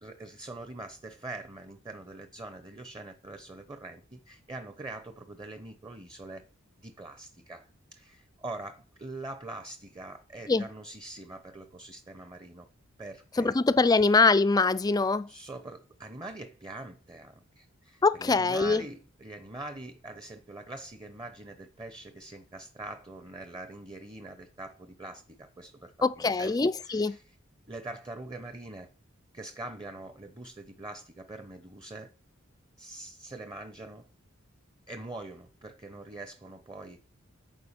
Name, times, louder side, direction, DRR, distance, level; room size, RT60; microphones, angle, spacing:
voice 1, 0.0-6.4 6.8-12.7 13.0-13.6 15.3-26.5 26.8-27.4 27.7-28.9 29.3-32.1 32.8-34.1 34.9-37.1, right 2 dB, 20° right, 0.8 m, -43 dB
voice 2, 13.4-15.3 18.0-18.8 26.0-27.2, left 3 dB, 20° left, 0.4 m, -23 dB
11.0 x 4.8 x 6.7 m
head